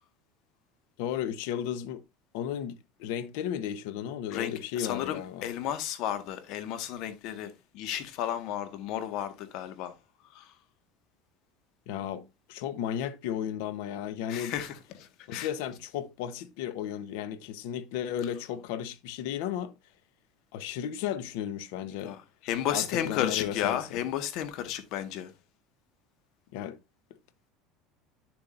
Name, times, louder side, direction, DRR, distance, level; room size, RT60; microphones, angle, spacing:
voice 1, 1.0-2.0 2.3-5.4 11.9-14.5 15.3-19.7 20.5-22.2 22.7-24.0 26.5-26.8, left 10 dB, 75° left, 1.1 m, -34 dB
voice 2, 4.3-9.9 10.3-10.5 14.3-15.5 22.0-25.3, left 10 dB, 60° left, 1.6 m, -33 dB
9.5 x 7.3 x 2.6 m
supercardioid pair, 125°, 0 cm